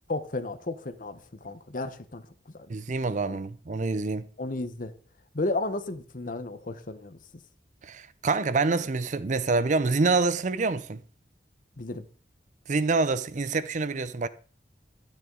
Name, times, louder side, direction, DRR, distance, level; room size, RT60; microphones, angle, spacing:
voice 1, 0.1-3.0 3.3-3.4 4.4-4.9 5.3-7.2 11.8-12.1, left 2 dB, 50° left, 0.9 m, -33 dB
voice 2, 2.7-4.3 7.8-11.0 12.7-14.3, right 3 dB, 45° right, 0.5 m, -26 dB
12.5 x 9.1 x 3.8 m
head